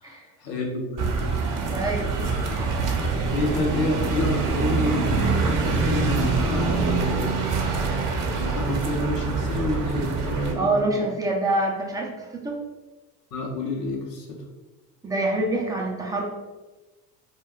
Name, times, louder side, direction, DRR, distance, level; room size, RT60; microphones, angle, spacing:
voice 1, 0.0-1.2 3.3-7.3 8.3-10.8 13.3-14.3, left 2 dB, 90° left, 0 dB, 0.7 m, -28 dB
sound 1, 1.0-10.5, right 4 dB, 45° right, 0.6 m, -25 dB
voice 2, 1.7-2.1 10.5-12.6 15.0-16.2, right 2 dB, 10° right, -2 dB, 0.3 m, -25 dB
2.3 x 2.2 x 3.5 m, 1.2 s
hypercardioid pair, 70°, 48 cm